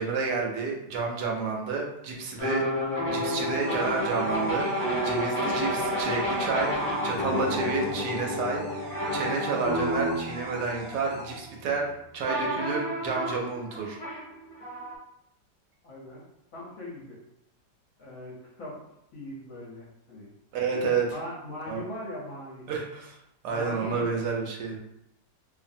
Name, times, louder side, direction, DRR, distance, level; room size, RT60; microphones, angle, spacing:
voice 1, 0.0-2.7 3.1-14.0 20.5-21.1 21.7-21.8 22.7-23.1 23.4-24.8, right 4 dB, 75° right, 0 dB, 1.1 m, -30 dB
sound 1, 2.4-11.6 12.3-15.0, equal, 45° left, 0.4 m, -30 dB
sound 2, 3.4-11.4, left 1 dB, 40° right, 0.3 m, -44 dB
voice 2, 15.8-16.2 16.5-17.2 18.0-18.8 19.1-20.3 21.1-22.7 23.5-24.1, left 1 dB, 60° left, -5 dB, 0.9 m, -40 dB
2.7 x 2.4 x 2.5 m, 0.81 s
omnidirectional pair, 1.9 m